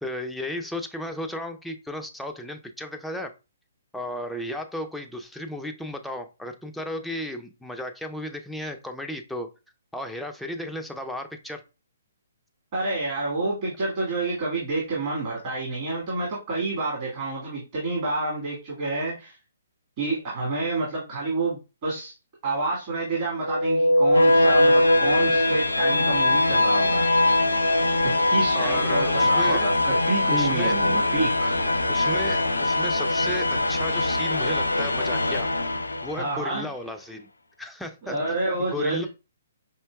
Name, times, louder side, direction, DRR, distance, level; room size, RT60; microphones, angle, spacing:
voice 1, 0.0-3.3 3.9-9.5 9.9-11.6 28.5-29.6 30.3-30.8 31.9-35.5 36.0-37.3 37.6-38.2 38.6-39.1, left 1 dB, ahead, 3 dB, 0.5 m, -34 dB
voice 2, 12.7-19.3 20.0-22.1 22.4-27.1 28.0-31.5 36.1-36.7 38.0-39.1, right 2 dB, 40° right, -6 dB, 1.7 m, -28 dB
sound 1, 23.4-36.4, left 1 dB, 85° left, 0.4 m, -22 dB
5.4 x 2.8 x 2.2 m, 0.30 s
figure-of-eight pair, 130°, 0 cm